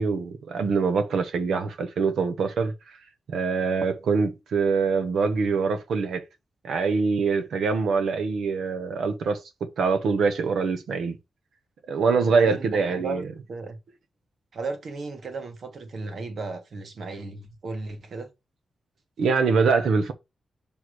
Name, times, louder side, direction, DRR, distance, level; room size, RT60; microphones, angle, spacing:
voice 1, 0.0-2.7 3.3-6.2 6.6-9.4 9.8-11.2 11.9-13.2 19.2-20.1, right 5 dB, 85° right, 1.2 m, -24 dB
voice 2, 12.3-13.8 14.5-18.3, right 3 dB, 50° right, 1.4 m, -35 dB
6.2 x 3.5 x 4.7 m
wide cardioid pair, 160°, 0 cm